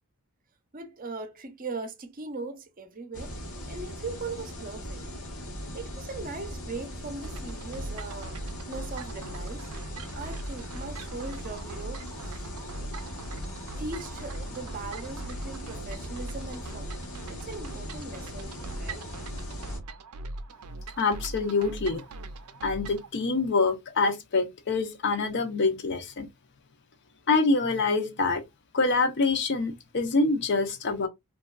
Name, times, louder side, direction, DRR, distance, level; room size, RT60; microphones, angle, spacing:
voice 1, 0.7-3.4 3.6-5.1 5.7-8.4 8.7-9.7 10.1-12.5 13.8-17.0 17.3-19.1, right 3 dB, 40° right, 0.6 m, -39 dB
sound 1, 3.1-19.8, equal, 80° left, 1.0 m, -39 dB
sound 2, 7.2-23.1, right 2 dB, 90° right, 0.5 m, -41 dB
voice 2, 21.0-22.0 22.6-26.3 27.3-28.4 28.7-31.1, left 3 dB, 50° left, 0.6 m, -25 dB
3.0 x 2.3 x 2.3 m
head